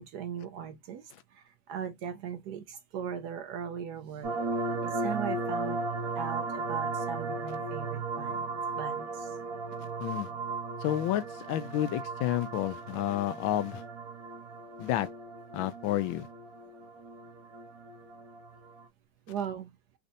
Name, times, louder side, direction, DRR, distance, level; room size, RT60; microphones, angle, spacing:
voice 1, 0.0-4.3 4.8-5.8 6.2-8.5 8.7-9.4 19.3-19.7, right 8 dB, 70° right, 1.1 m, -39 dB
sound 1, 4.2-18.8, right 3 dB, 55° right, 1.2 m, -36 dB
voice 2, 10.8-13.8 14.8-15.1 15.5-16.3, left 13 dB, 85° left, 1.4 m, -30 dB
4.2 x 2.6 x 2.6 m
omnidirectional pair, 2.1 m